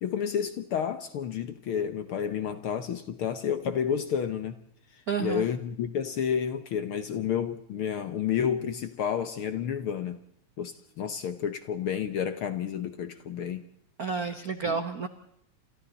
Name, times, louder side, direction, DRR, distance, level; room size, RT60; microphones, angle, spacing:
voice 1, 0.0-4.6 5.2-10.2 10.6-13.6 14.6-14.8, left 8 dB, 65° left, 1.5 m, -30 dB
voice 2, 5.1-5.5 14.0-15.1, right 5 dB, 65° right, 0.9 m, -30 dB
29.0 x 27.0 x 4.0 m
omnidirectional pair, 3.3 m